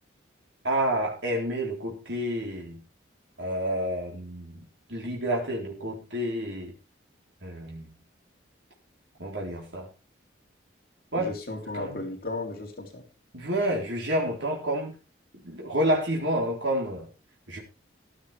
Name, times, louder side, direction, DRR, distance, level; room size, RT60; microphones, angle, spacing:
voice 1, 0.6-2.8 3.4-4.6 4.9-6.7 7.4-7.9 9.2-9.9 11.1-11.3 11.7-12.0 13.3-15.0 15.4-17.1 17.5-17.6, right 1 dB, 75° right, -1 dB, 4.0 m, -29 dB
voice 2, 11.1-13.0, left 2 dB, 50° left, 2 dB, 3.4 m, -35 dB
15.0 x 11.5 x 3.5 m, 0.30 s
head